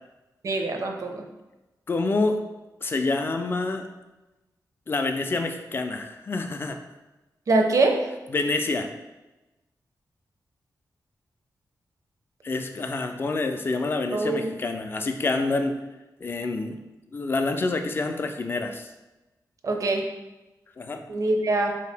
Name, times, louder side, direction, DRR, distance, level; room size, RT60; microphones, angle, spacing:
voice 1, 0.4-1.2 7.5-8.1 14.1-14.6 19.6-20.1 21.1-21.7, right 2 dB, 50° right, 3 dB, 0.5 m, -24 dB
voice 2, 1.9-2.4 2.8-3.9 4.9-6.8 8.3-8.9 12.4-15.8 16.2-16.8 17.1-18.9 20.8-21.0, left 3 dB, 35° left, 5 dB, 0.3 m, -27 dB
4.4 x 2.8 x 3.3 m, 1.1 s
wide cardioid pair, 180°, 7 cm